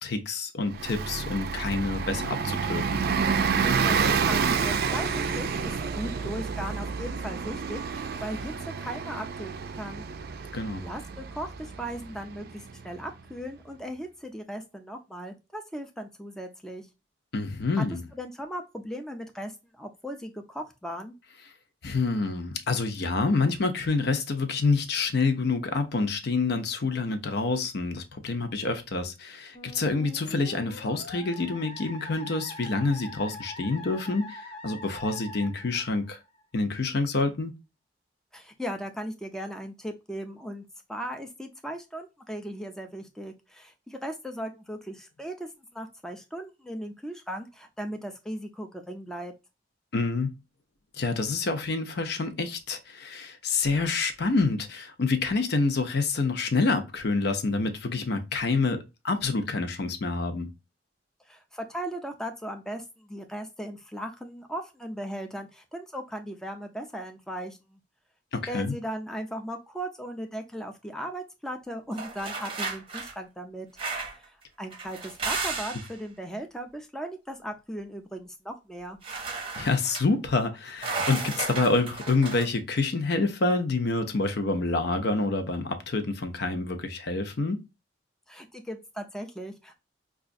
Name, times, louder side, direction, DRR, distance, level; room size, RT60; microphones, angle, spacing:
voice 1, 0.0-3.1 10.5-10.8 17.3-18.0 21.8-36.2 36.5-37.5 49.9-50.4 51.0-60.5 68.3-68.7 79.6-87.6, left 3 dB, 65° left, 0.6 m, -27 dB
Bus, 0.7-13.0, right 5 dB, 60° right, 0.4 m, -29 dB
voice 2, 3.6-10.0 10.8-16.9 17.7-17.8 18.1-21.1 38.3-49.3 61.3-67.8 68.5-73.7 74.1-79.0 88.3-89.7, equal, 5° left, 0.5 m, -37 dB
Musical instrument, 29.5-36.4, left 1 dB, 35° left, 0.8 m, -43 dB
sound 1, 72.0-73.1 73.8-74.2 74.7-75.9 79.0-80.0 80.8-82.5, right 4 dB, 30° right, 0.7 m, -33 dB
4.9 x 2.4 x 2.4 m
head